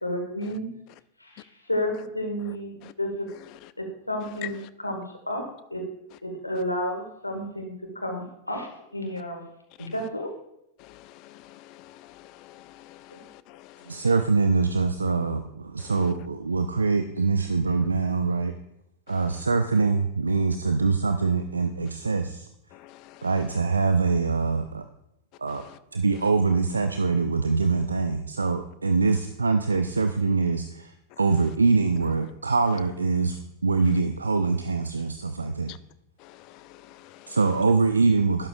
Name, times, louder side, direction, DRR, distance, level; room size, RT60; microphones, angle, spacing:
voice 1, 0.0-0.7 1.2-3.3 3.8-5.4 5.7-5.9 6.2-9.4 9.8-10.3 13.1-13.2, equal, 85° left, 3 dB, 1.6 m, -31 dB
voice 2, 10.8-14.1 15.8-15.9 19.1-19.3 22.7-23.3 25.5-25.8 35.7-35.8 36.2-37.4, left 16 dB, 40° left, 16 dB, 0.4 m, -46 dB
voice 3, 13.9-18.5 19.1-22.5 23.2-24.9 25.4-25.6 25.9-35.7 37.3-38.5, right 4 dB, 75° right, 8 dB, 0.5 m, -24 dB
12.0 x 10.5 x 2.4 m, 0.79 s
figure-of-eight pair, 90°, 0 cm